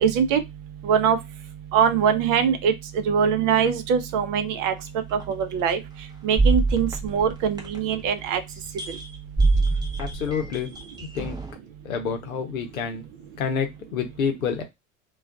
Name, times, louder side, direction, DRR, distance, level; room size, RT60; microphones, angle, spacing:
voice 1, 0.0-0.4 0.8-1.2 1.7-2.7 3.1-4.7 5.1-5.8 6.2-8.4, right 7 dB, 50° right, 9 dB, 0.7 m, -22 dB
sound 1, 5.2-5.3 6.4-8.0 8.8-9.1 9.4-11.5, right 3 dB, 10° right, 0.7 m, -24 dB
voice 2, 10.0-10.7 11.1-11.4 11.8-13.1 13.4-14.6, left 6 dB, 85° left, 5 dB, 0.8 m, -28 dB
2.4 x 2.2 x 2.3 m, 0.19 s
hypercardioid pair, 75°, 41 cm